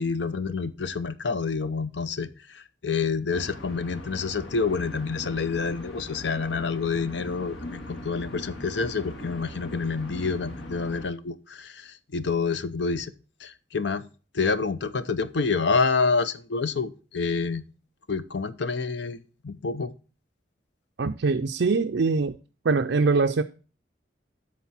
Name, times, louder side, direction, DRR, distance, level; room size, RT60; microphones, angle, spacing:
voice 1, 0.0-13.1 13.4-14.0 14.3-17.6 18.1-19.2 19.4-19.9, left 4 dB, 70° left, 13 dB, 0.7 m, -28 dB
sound 1, 3.3-11.1, left 1 dB, 85° left, 2.0 m, -40 dB
voice 2, 21.0-22.3 22.6-23.4, right 4 dB, 70° right, 6 dB, 0.5 m, -23 dB
13.0 x 4.4 x 4.3 m, 0.36 s
head